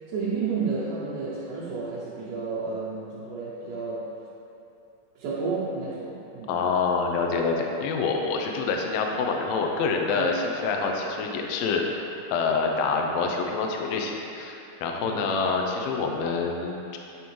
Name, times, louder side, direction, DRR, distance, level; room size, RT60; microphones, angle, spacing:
voice 1, 0.1-4.1 5.2-6.5 10.2-10.3 15.0-15.2, right 4 dB, 75° right, -9 dB, 1.9 m, -31 dB
voice 2, 6.5-11.8 12.3-17.0, left 4 dB, 90° left, 2 dB, 1.5 m, -26 dB
9.3 x 3.6 x 3.0 m, 2.8 s
omnidirectional pair, 3.7 m